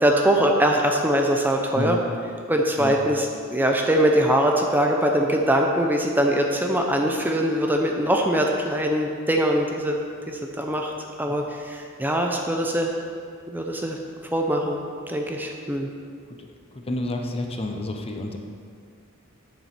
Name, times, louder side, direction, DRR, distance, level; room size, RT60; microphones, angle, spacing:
voice 1, 0.0-2.0 2.5-10.0 10.3-10.9 11.2-13.0 13.5-14.0 14.3-14.8 15.1-15.9, right 1 dB, 10° right, 1 dB, 0.7 m, -22 dB
voice 2, 16.7-18.4, left 2 dB, 25° left, 3 dB, 0.8 m, -29 dB
8.4 x 7.3 x 6.0 m, 2.2 s
head